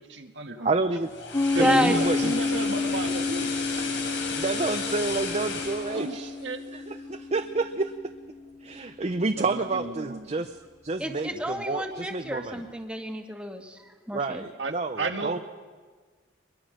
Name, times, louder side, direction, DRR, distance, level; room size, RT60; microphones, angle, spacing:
voice 1, 0.1-0.7 1.6-3.5 5.9-6.2 6.4-6.6 10.0-10.1 14.6-14.7 15.0-15.4, right 3 dB, 80° right, 5 dB, 1.6 m, -32 dB
voice 2, 0.6-1.1 1.5-2.3 4.3-6.3 6.7-7.9 8.6-10.6 10.8-12.6 14.1-15.4, right 3 dB, 35° right, 7 dB, 0.7 m, -29 dB
sound 1, 0.9-7.1 7.4-7.6, left 4 dB, 90° left, 4.7 m, -34 dB
Piano, 1.3-8.6, left 3 dB, 25° left, 0.6 m, -30 dB
voice 3, 1.6-2.0 11.0-14.4, equal, 5° right, 3 dB, 1.6 m, -29 dB
23.5 x 22.0 x 6.4 m, 1.5 s
head